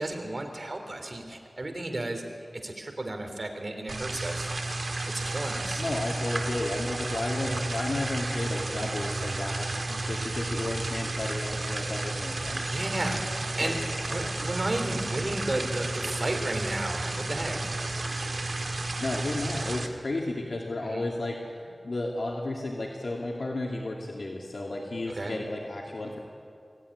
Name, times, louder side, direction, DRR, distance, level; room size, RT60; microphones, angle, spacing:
voice 1, 0.0-2.2 2.6-4.5 5.3-5.8 8.7-9.0 12.7-13.8 14.1-17.7 20.8-21.1 25.1-25.4, right 1 dB, 50° right, 4 dB, 3.5 m, -33 dB
sound 1, 3.9-19.9, right 2 dB, 65° right, 1.8 m, -32 dB
voice 2, 5.8-12.6 13.6-13.7 14.0-14.5 19.0-26.2, left 2 dB, 75° left, -1 dB, 2.6 m, -33 dB
24.0 x 16.0 x 9.9 m, 2.4 s
wide cardioid pair, 70°, 0 cm